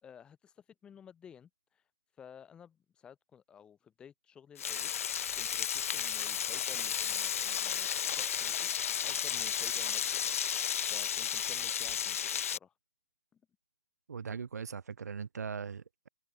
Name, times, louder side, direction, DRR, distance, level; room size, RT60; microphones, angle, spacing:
voice 1, 0.0-1.8 2.2-4.9 5.3-10.3 10.9-12.7 13.3-13.4, left 8 dB, 10° left, 4.9 m, -54 dB
Frying (food), 4.6-12.6, left 9 dB, 60° left, 0.4 m, -33 dB
sound 1, 6.0-10.9, left 12 dB, 40° left, 1.7 m, -49 dB
voice 2, 14.1-16.1, right 6 dB, 80° right, 1.1 m, -40 dB
hypercardioid pair, 160°, 9 cm